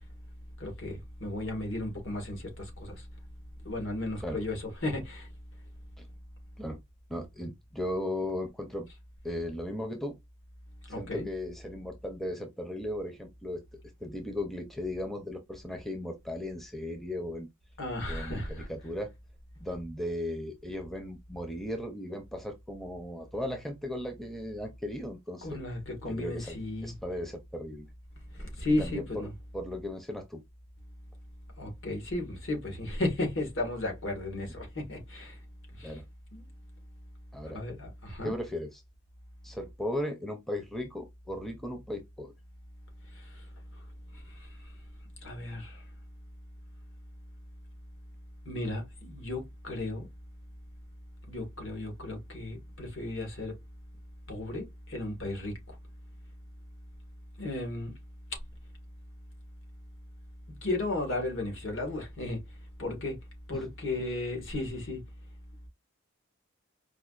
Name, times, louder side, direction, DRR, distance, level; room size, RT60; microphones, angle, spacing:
voice 1, 0.6-3.0 3.6-5.3 10.9-11.3 17.8-18.7 25.4-26.9 28.3-29.3 31.6-35.4 35.8-35.9 36.3-36.4 37.5-38.4 43.1-43.2 45.2-45.8 48.4-50.1 51.3-53.5 54.3-55.8 57.4-57.9 60.6-62.4 62.8-63.2 63.5-65.0, left 2 dB, 65° left, 1.6 m, -34 dB
voice 2, 7.1-8.9 9.2-10.2 11.0-13.6 14.0-17.5 18.1-19.1 19.6-25.6 26.1-26.6 26.8-27.9 28.7-30.4 35.8-36.1 37.3-37.6 38.2-38.8 39.4-42.3 63.5-63.7, left 1 dB, ahead, 0.5 m, -36 dB
4.7 x 2.4 x 2.4 m
head